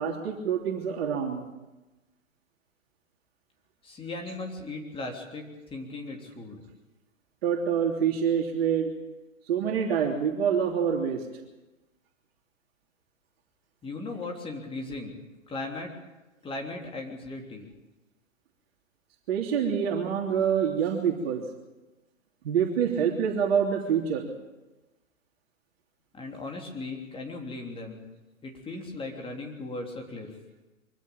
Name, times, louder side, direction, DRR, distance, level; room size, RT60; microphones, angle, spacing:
voice 1, 0.0-1.5 7.4-8.9 9.5-11.2 19.3-21.4 22.4-24.3, right 7 dB, 45° right, 0 dB, 3.3 m, -26 dB
voice 2, 3.8-5.4 5.7-6.6 13.8-15.2 15.5-15.9 16.4-17.7 26.1-28.1 28.4-30.3, left 2 dB, 15° left, 1 dB, 3.4 m, -37 dB
24.0 x 15.5 x 8.8 m, 1.1 s
figure-of-eight pair, 120°, 40 cm